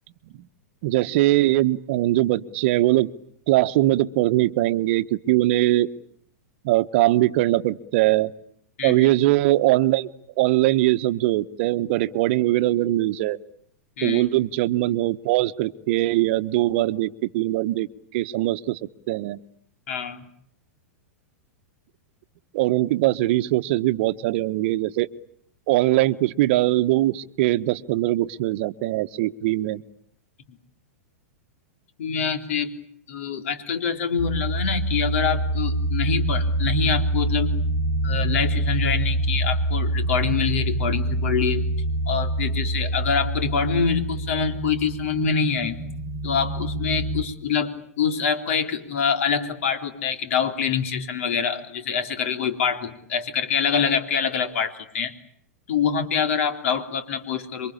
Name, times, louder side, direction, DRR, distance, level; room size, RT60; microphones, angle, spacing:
voice 1, 0.8-3.1 3.5-5.9 6.6-8.3 8.8-10.1 10.4-13.4 14.0-17.9 18.1-18.8 19.1-19.4 22.5-25.1 25.7-29.8, right 16 dB, 50° right, 13 dB, 1.1 m, -21 dB
voice 2, 8.8-9.1 14.0-14.3 19.9-20.3 30.5-30.6 32.0-32.7 33.1-37.5 38.0-41.6 42.1-45.8 46.2-55.1 55.7-57.7, left 6 dB, 60° left, 7 dB, 3.7 m, -25 dB
sound 1, 34.2-47.2, right 1 dB, 30° left, 4.1 m, -25 dB
27.5 x 24.0 x 8.6 m, 0.70 s
figure-of-eight pair, 100°, 8 cm